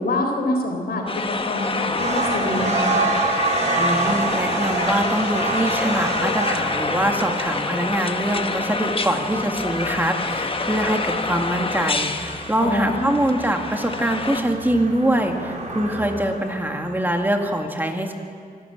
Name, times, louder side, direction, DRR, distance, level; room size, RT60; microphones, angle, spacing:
voice 1, 0.0-3.1 12.6-13.1, left 2 dB, 85° left, 3 dB, 3.8 m, -25 dB
sound 1, 1.1-14.4, left 3 dB, 35° left, 1.1 m, -27 dB
sound 2, 2.0-17.3, right 3 dB, 50° right, 3.9 m, -28 dB
voice 2, 3.8-18.1, right 1 dB, 10° right, 3 dB, 2.0 m, -23 dB
25.0 x 12.5 x 8.7 m, 2.3 s
wide cardioid pair, 100°, 16 cm